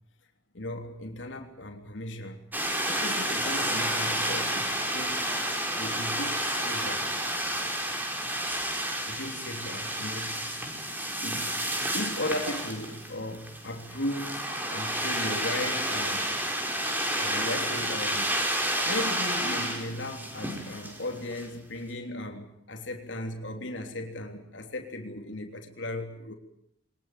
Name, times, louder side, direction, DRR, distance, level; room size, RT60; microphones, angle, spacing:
voice 1, 0.5-2.4 2.9-5.3 5.7-7.0 7.6-7.8 9.1-10.5 11.2-11.6 11.9-16.3 17.2-18.4 18.8-26.3, left 1 dB, 85° left, 4 dB, 3.3 m, -36 dB
sound 1, 2.5-21.5, right 1 dB, 10° right, 5.1 m, -30 dB
22.5 x 21.0 x 9.2 m, 0.75 s
head